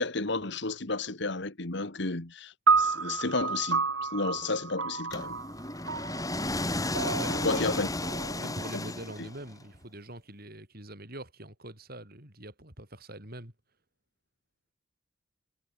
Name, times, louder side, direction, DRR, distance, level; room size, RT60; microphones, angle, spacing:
voice 1, 0.0-5.4 7.3-7.9 9.2-9.3, left 3 dB, 60° left, 2.0 m, -32 dB
sound 1, 2.7-9.1, right 5 dB, 85° right, 5.1 m, -31 dB
sound 2, 5.1-9.5, left 2 dB, 20° left, 4.1 m, -33 dB
voice 2, 6.9-7.9 8.4-13.5, right 1 dB, 50° right, 7.8 m, -44 dB
head